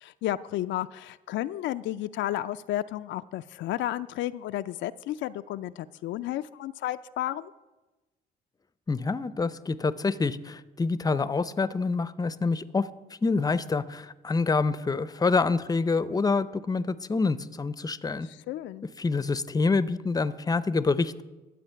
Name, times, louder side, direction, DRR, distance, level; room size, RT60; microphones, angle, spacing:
voice 1, 0.0-7.5 18.2-18.9, left 13 dB, 70° left, 11 dB, 0.4 m, -32 dB
voice 2, 8.9-12.9 13.2-18.3 19.0-21.2, left 4 dB, 20° left, 16 dB, 0.6 m, -26 dB
12.0 x 7.7 x 5.7 m, 1.1 s
supercardioid pair, 65°, 20 cm